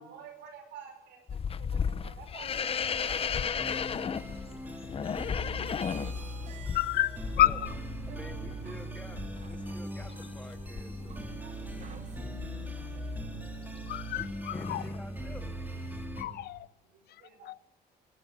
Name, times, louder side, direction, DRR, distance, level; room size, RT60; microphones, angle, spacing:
voice 1, 0.0-3.5 4.5-4.6 5.8-6.0 6.4-6.6 7.4-7.7 8.0-8.3 11.4-12.3 12.7-12.9 16.8-17.5, right 7 dB, 80° right, 6.1 m, -52 dB
sound 1, 1.3-14.2 14.5-15.0 15.4-16.0, left 7 dB, 35° left, 0.9 m, -36 dB
sound 2, 3.6-16.3, equal, 10° right, 3.0 m, -40 dB
sound 3, 5.7-12.3, right 7 dB, 45° right, 1.4 m, -53 dB
voice 2, 6.7-7.7 13.9-14.8 16.2-16.7 17.4-17.5, left 13 dB, 70° left, 0.8 m, -29 dB
voice 3, 8.1-11.2 14.1-15.5, left 1 dB, 10° left, 1.8 m, -49 dB
23.0 x 12.0 x 9.3 m
cardioid pair, 110°, 17 cm